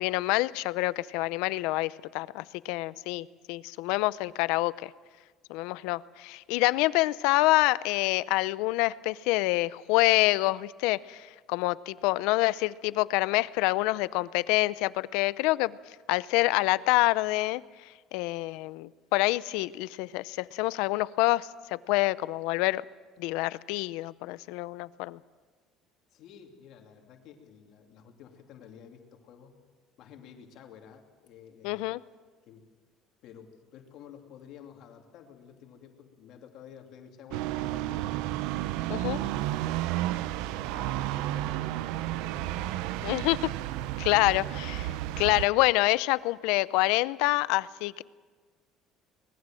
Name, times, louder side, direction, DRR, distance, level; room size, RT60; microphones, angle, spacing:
voice 1, 0.0-4.9 5.5-15.8 16.1-17.6 18.1-22.8 23.2-25.2 31.6-32.0 38.9-39.2 43.0-43.5 44.0-48.0, left 19 dB, 85° left, 18 dB, 0.6 m, -27 dB
voice 2, 26.1-29.6 30.0-31.9 32.4-32.7 33.2-38.1 38.9-43.0 43.6-44.2, left 8 dB, 50° left, 3 dB, 2.8 m, -51 dB
sound 1, 37.3-45.5, right 14 dB, 80° right, 0.6 m, -32 dB
24.5 x 20.0 x 7.6 m, 1.5 s
cardioid pair, 175°, 0 cm